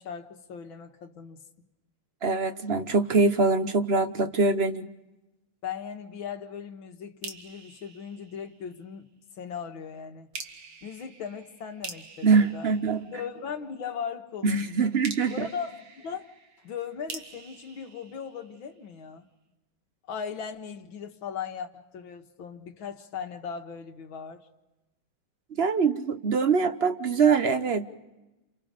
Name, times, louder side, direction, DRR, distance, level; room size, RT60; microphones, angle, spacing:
voice 1, 0.0-1.4 5.6-9.1 9.4-10.3 10.8-12.7 13.1-14.9 15.3-16.3 16.6-19.3 20.1-24.4, left 7 dB, 65° left, 2.2 m, -38 dB
voice 2, 2.2-4.9 12.2-13.0 14.4-15.5 25.5-27.9, right 4 dB, 45° right, 0.8 m, -23 dB
sound 1, 7.2-9.0 10.3-13.7 15.0-18.9, right 5 dB, 75° right, 2.7 m, -45 dB
30.0 x 29.0 x 5.1 m
omnidirectional pair, 2.4 m